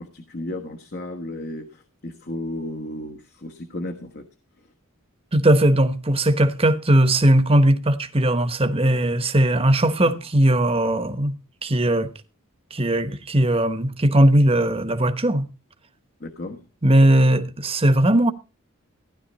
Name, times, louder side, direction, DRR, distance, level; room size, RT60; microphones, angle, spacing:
voice 1, 0.0-4.2 16.2-16.6, left 1 dB, 45° left, 1.4 m, -34 dB
voice 2, 5.3-11.3 11.6-12.1 12.7-15.5 16.8-18.3, right 1 dB, 25° right, 1.2 m, -18 dB
16.0 x 11.0 x 4.2 m
head